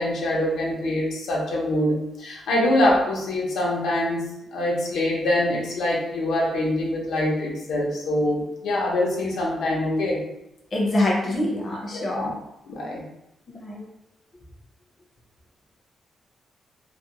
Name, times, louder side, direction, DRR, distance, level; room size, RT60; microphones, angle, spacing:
voice 1, 0.0-10.2 11.9-12.3 12.7-13.0, left 1 dB, 85° left, -3 dB, 0.6 m, -24 dB
voice 2, 10.7-12.3 13.5-13.8, left 1 dB, 30° left, -3 dB, 0.5 m, -25 dB
2.3 x 2.1 x 2.8 m, 0.85 s
wide cardioid pair, 170°, 0 cm